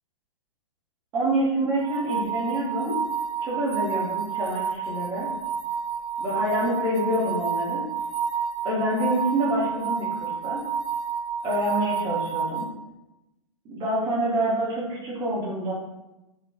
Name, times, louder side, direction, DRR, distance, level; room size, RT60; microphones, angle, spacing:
voice 1, 1.1-3.0 3.4-5.3 6.2-7.8 8.6-10.6 11.4-12.7 13.6-15.7, right 1 dB, 25° right, -7 dB, 0.6 m, -27 dB
sound 1, 1.8-12.6, right 6 dB, 70° right, 0.6 m, -30 dB
2.7 x 2.0 x 2.2 m, 0.98 s
hypercardioid pair, 120°, 17 cm